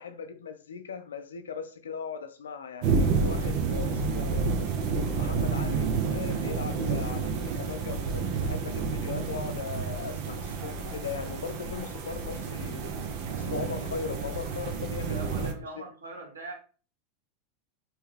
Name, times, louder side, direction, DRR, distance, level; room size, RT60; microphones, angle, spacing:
voice 1, 0.0-4.6 5.1-12.8 13.4-15.6, left 6 dB, 80° left, 0.4 m, -38 dB
sound 1, 2.8-15.5, right 5 dB, 55° right, 0.6 m, -30 dB
voice 2, 15.1-16.5, right 2 dB, 85° right, 0.9 m, -41 dB
2.8 x 2.2 x 3.2 m
hypercardioid pair, 90°, 0 cm